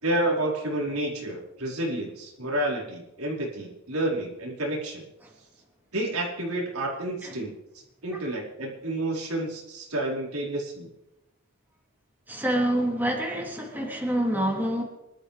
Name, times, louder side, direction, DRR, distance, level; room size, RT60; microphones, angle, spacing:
voice 1, 0.0-5.0 5.9-7.5 8.0-10.9, right 1 dB, 90° right, -3 dB, 4.6 m, -29 dB
voice 2, 12.3-14.8, right 1 dB, 10° right, -2 dB, 3.2 m, -27 dB
25.5 x 12.5 x 3.4 m, 0.93 s
head